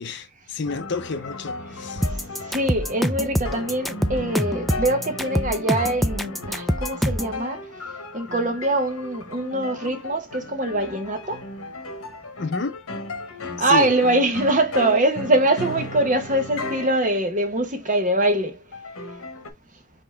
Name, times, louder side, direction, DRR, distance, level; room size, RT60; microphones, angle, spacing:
voice 1, 0.0-2.1 12.4-12.8 13.6-13.9, left 4 dB, 55° left, 0.6 m, -30 dB
sound 1, 0.6-17.1 17.8-17.9 18.7-19.5, left 2 dB, 80° left, 1.0 m, -35 dB
sound 2, 1.0-1.1 1.9-2.6 4.1-5.0 6.4-7.3, equal, 65° right, 1.3 m, -46 dB
sound 3, 2.0-7.4, equal, ahead, 0.3 m, -24 dB
voice 2, 2.5-7.6 8.1-11.4 13.6-18.6, right 1 dB, 35° right, 1.0 m, -23 dB
5.6 x 2.9 x 3.3 m
head